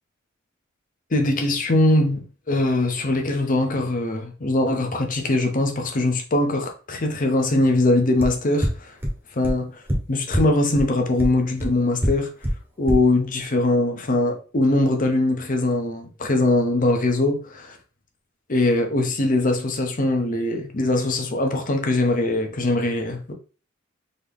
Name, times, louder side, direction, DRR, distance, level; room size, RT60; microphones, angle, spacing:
voice 1, 1.1-8.9 9.3-9.8 10.1-12.3 12.8-17.8 18.5-23.3, left 2 dB, 40° left, 0.8 m, -21 dB
sound 1, 8.2-8.3 8.6-8.7 9.0-9.1 9.4-9.5 9.9-10.0 10.3-10.4 10.8-10.9 11.2-11.3 11.6-11.7 12.0-12.1 12.4-12.5 12.9-13.0, equal, 10° right, 1.0 m, -23 dB
3.9 x 3.0 x 3.4 m
head